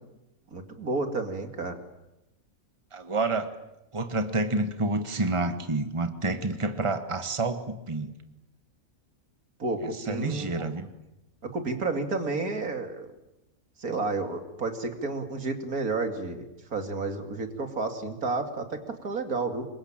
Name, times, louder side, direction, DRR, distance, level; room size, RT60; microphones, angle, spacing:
voice 1, 0.5-1.8 9.6-10.6 11.4-13.1 13.8-19.7, right 3 dB, 85° right, 6 dB, 3.0 m, -31 dB
voice 2, 2.9-3.5 3.9-8.1 9.8-10.9, right 2 dB, 20° right, 9 dB, 1.6 m, -29 dB
26.5 x 23.0 x 8.9 m, 0.92 s
omnidirectional pair, 1.5 m